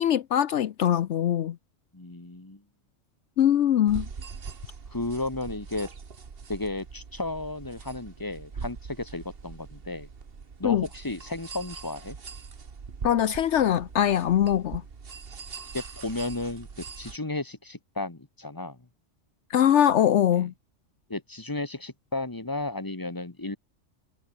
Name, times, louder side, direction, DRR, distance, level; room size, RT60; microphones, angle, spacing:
voice 1, 0.0-1.6 3.4-4.1 10.6-10.8 13.0-14.8 19.5-20.5, left 10 dB, 70° left, 1.0 m, -22 dB
voice 2, 1.9-2.6 4.9-5.9 6.5-10.1 10.6-12.2 15.7-16.7 17.0-18.8 20.4-20.5 21.1-23.6, left 2 dB, 15° left, 1.9 m, -33 dB
sound 1, 3.9-17.2, right 5 dB, 50° right, 1.6 m, -42 dB
omnidirectional pair, 1.2 m